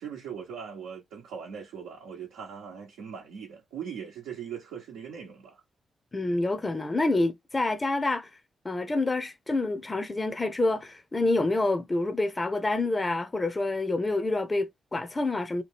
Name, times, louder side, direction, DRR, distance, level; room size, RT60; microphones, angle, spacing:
voice 1, 0.0-5.6, right 7 dB, 90° right, 0.7 m, -40 dB
voice 2, 6.1-8.4 8.6-15.6, left 2 dB, 30° left, 0.6 m, -27 dB
2.9 x 2.3 x 3.3 m
supercardioid pair, 45°, 0 cm